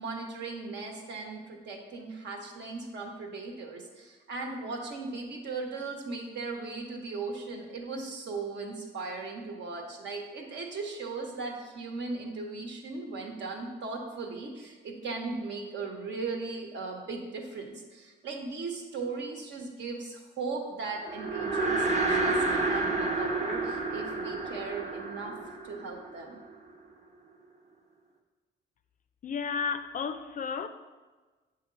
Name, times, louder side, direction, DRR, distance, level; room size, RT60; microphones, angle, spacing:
voice 1, 0.0-22.4 22.6-25.3 25.6-26.4, right 3 dB, 65° right, 1.1 m, -38 dB
sound 1, 21.1-26.5, right 2 dB, 35° right, 1.0 m, -30 dB
voice 2, 29.2-30.7, left 6 dB, 45° left, 0.4 m, -32 dB
7.6 x 2.9 x 5.2 m
cardioid pair, 90°, 20 cm